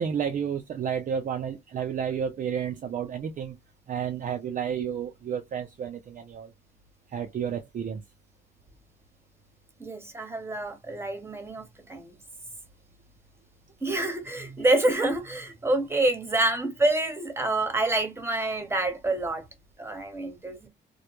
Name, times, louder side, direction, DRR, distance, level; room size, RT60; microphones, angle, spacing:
voice 1, 0.0-3.6 3.9-6.5 7.1-8.0, right 8 dB, 40° right, 0.4 m, -31 dB
voice 2, 9.8-12.1 13.8-19.4 19.8-20.7, right 2 dB, 10° right, 0.9 m, -27 dB
2.2 x 2.1 x 2.9 m
cardioid pair, 90°, 20 cm